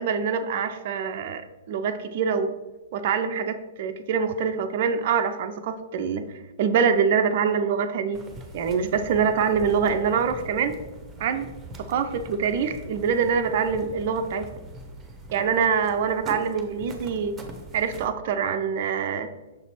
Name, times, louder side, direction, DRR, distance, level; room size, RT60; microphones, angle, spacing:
voice 1, 0.0-2.5 2.9-8.2 8.5-10.8 11.2-11.5 11.8-14.5 15.3-17.4 17.7-19.3, right 6 dB, 45° right, 8 dB, 0.4 m, -25 dB
sound 1, 8.1-18.1, right 1 dB, 10° right, 0.8 m, -42 dB
6.3 x 4.1 x 4.3 m, 1.1 s
figure-of-eight pair, 110°, 0 cm